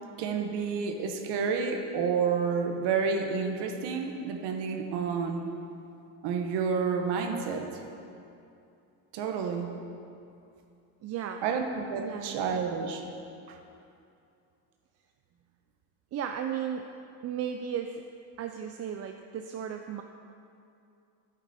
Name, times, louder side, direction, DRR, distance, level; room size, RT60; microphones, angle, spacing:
voice 1, 0.2-5.4 6.2-7.7 9.1-9.7 11.4-13.0 13.5-13.6, right 5 dB, 65° right, 4 dB, 1.0 m, -30 dB
voice 2, 11.0-11.4 12.0-12.4 16.1-16.9 17.2-18.0 18.4-20.0, right 8 dB, 35° right, 5 dB, 0.4 m, -35 dB
9.3 x 8.2 x 4.2 m, 2.6 s
supercardioid pair, 95°, 44 cm